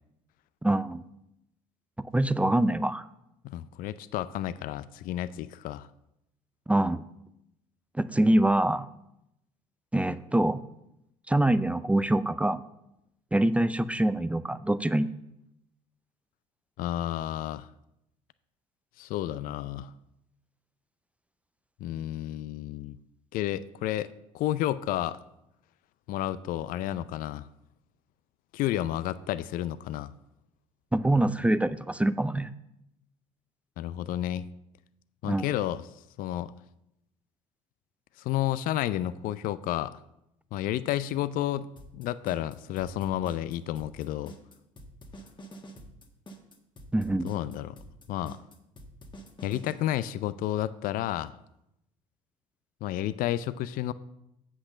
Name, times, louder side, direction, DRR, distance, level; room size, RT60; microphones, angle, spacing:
voice 1, 0.6-1.0 2.1-3.0 6.7-7.0 7.9-8.9 9.9-10.6 11.3-12.6 13.3-15.1 30.9-32.5 35.2-35.5 46.9-47.3, right 1 dB, 10° right, 14 dB, 0.5 m, -24 dB
voice 2, 3.4-5.9 16.8-17.7 19.0-19.9 21.8-23.0 23.3-25.2 26.1-27.5 28.5-30.1 33.8-34.5 35.2-35.8 36.2-36.5 38.2-40.0 40.5-44.3 47.2-47.8 48.1-48.4 49.4-51.4 52.8-53.9, left 13 dB, 55° left, 16 dB, 0.4 m, -31 dB
sound 1, 41.8-49.7, right 1 dB, 25° left, 1.6 m, -47 dB
7.9 x 6.2 x 6.4 m, 0.84 s
hypercardioid pair, 60°, 17 cm